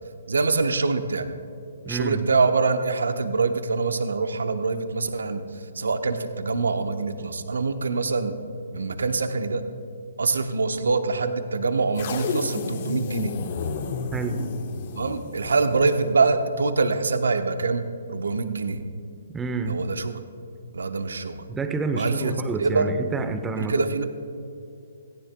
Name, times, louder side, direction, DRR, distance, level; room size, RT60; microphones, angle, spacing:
voice 1, 0.3-1.3 1.8-8.4 8.7-9.6 10.2-13.3 15.0-18.8 19.7-20.2 20.7-21.4 21.9-22.3 22.6-23.0 23.6-24.0, right 4 dB, 80° right, 8 dB, 0.9 m, -24 dB
voice 2, 1.8-2.3 13.9-14.4 19.3-19.8 21.5-24.0, right 3 dB, 10° right, 8 dB, 0.9 m, -29 dB
sound 1, 12.0-16.2, left 5 dB, 50° left, 1.2 m, -32 dB
17.0 x 15.0 x 2.3 m, 2.6 s
hypercardioid pair, 140°, 0 cm